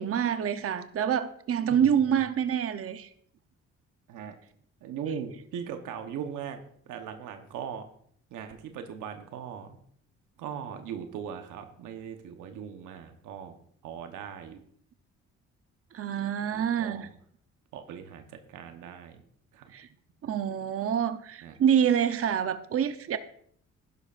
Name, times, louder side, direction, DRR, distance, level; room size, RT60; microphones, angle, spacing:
voice 1, 0.0-3.1 15.9-17.1 19.7-19.9 20.2-23.2, right 8 dB, 50° right, 10 dB, 0.8 m, -27 dB
voice 2, 4.1-4.4 4.8-6.6 6.9-7.8 8.3-9.8 10.4-13.6 13.8-14.6 16.5-17.1 17.7-19.2 19.5-19.7 21.4-21.5, right 8 dB, 85° right, 6 dB, 1.1 m, -39 dB
11.5 x 11.0 x 2.5 m, 0.63 s
cardioid pair, 90°, 30 cm